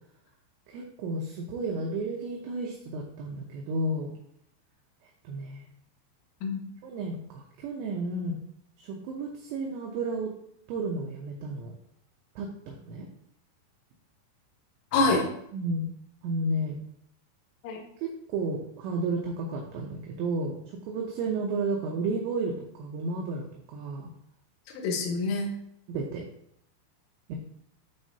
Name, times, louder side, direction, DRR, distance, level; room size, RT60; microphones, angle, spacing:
voice 1, 0.7-4.1 5.2-5.7 6.8-8.4 8.8-10.3 10.7-11.7 12.4-13.1 15.5-15.9 16.2-16.8 18.0-20.6 20.9-24.1 25.9-26.2 27.3-27.4, right 2 dB, 80° right, 1 dB, 2.8 m, -32 dB
voice 2, 14.9-15.3 17.6-17.8 24.7-25.5, left 3 dB, 85° left, 0 dB, 3.6 m, -26 dB
12.0 x 4.2 x 2.8 m, 0.71 s
omnidirectional pair, 5.6 m